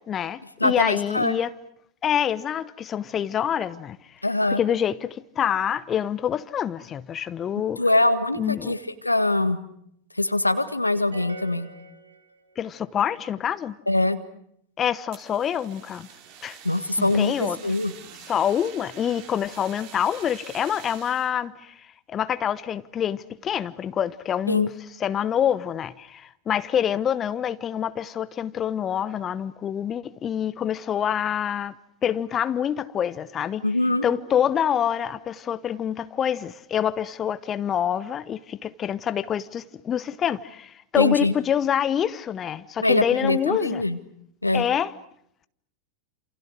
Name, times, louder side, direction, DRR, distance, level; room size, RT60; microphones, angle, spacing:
voice 1, 0.1-1.5 2.0-4.0 4.6-7.8 8.3-8.7 12.6-13.7 14.8-16.1 16.4-16.6 17.0-17.6 18.3-24.7 25.0-31.7 32.0-33.6 34.0-43.8 44.5-44.9, left 9 dB, 25° left, 1.0 m, -26 dB
voice 2, 0.6-1.4 4.2-4.6 7.8-9.6 10.2-11.7 13.9-14.2 16.6-17.9 24.5-24.7 33.6-34.0 41.0-41.3 42.8-44.0 44.4-44.6, left 2 dB, 85° left, 1.7 m, -23 dB
sound 1, 11.1-12.8, equal, 80° right, 3.1 m, -42 dB
Fire, 15.1-21.3, right 8 dB, 45° right, 4.2 m, -46 dB
28.5 x 28.0 x 6.5 m
figure-of-eight pair, 90°, 0 cm